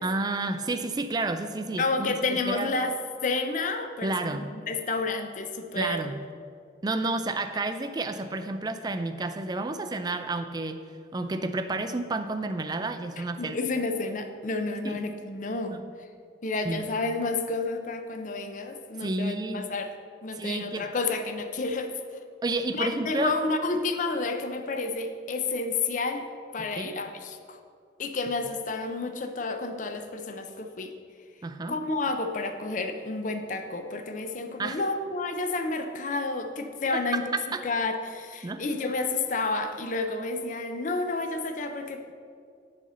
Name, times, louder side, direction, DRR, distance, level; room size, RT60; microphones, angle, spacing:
voice 1, 0.0-2.7 4.0-4.5 5.8-6.1 6.8-10.8 11.1-13.6 14.8-15.0 15.7-15.8 16.6-16.9 19.0-19.7 20.3-20.9 22.4-23.3 26.8-26.9 31.4-31.8 34.6-34.8 37.1-37.2 37.5-37.6 38.4-38.6, right 2 dB, 20° right, 8 dB, 0.4 m, -30 dB
voice 2, 1.8-2.9 3.2-6.1 13.2-16.1 16.4-19.9 20.2-22.2 22.7-27.6 28.0-30.9 31.7-37.3 37.6-42.1, left 3 dB, 45° left, 7 dB, 0.5 m, -30 dB
7.5 x 4.2 x 6.7 m, 2.2 s
head